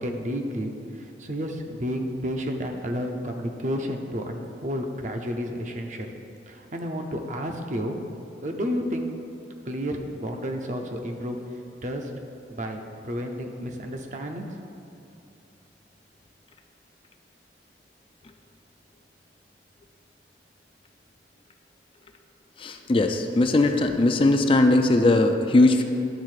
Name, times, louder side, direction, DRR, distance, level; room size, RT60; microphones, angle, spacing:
voice 1, 0.0-6.1 6.5-8.0 8.4-9.1 9.7-11.4 11.8-12.1 12.5-14.5, equal, 45° right, 4 dB, 0.7 m, -31 dB
voice 2, 22.6-25.8, left 2 dB, 30° left, 5 dB, 0.4 m, -19 dB
10.5 x 3.6 x 6.5 m, 2.8 s
head